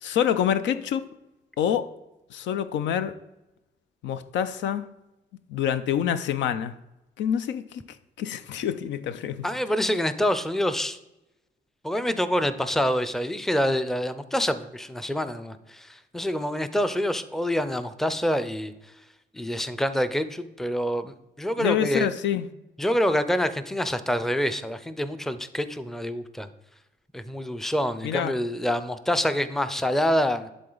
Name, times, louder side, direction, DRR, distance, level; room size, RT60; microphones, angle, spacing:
voice 1, 0.0-1.0 1.6-1.9 2.3-3.1 4.0-4.9 5.5-6.8 7.2-7.8 8.2-9.5 21.6-22.5 28.0-28.3, left 9 dB, 90° left, 0.5 m, -26 dB
voice 2, 9.4-11.0 11.8-18.7 19.3-22.1 22.8-26.5 27.1-30.5, equal, ahead, 0.4 m, -26 dB
11.0 x 3.9 x 3.9 m
cardioid pair, 90°, 18 cm